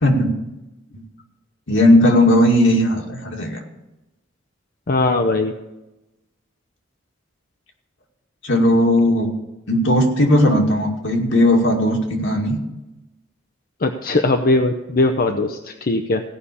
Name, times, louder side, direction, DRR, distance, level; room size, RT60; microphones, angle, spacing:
voice 1, 0.0-0.4 0.9-1.0 1.7-3.6 8.4-9.3 9.7-12.6, left 1 dB, 75° left, 1 dB, 2.3 m, -16 dB
voice 2, 4.9-5.5 13.8-16.2, left 2 dB, 50° left, 6 dB, 0.7 m, -19 dB
16.5 x 5.7 x 8.4 m, 0.99 s
head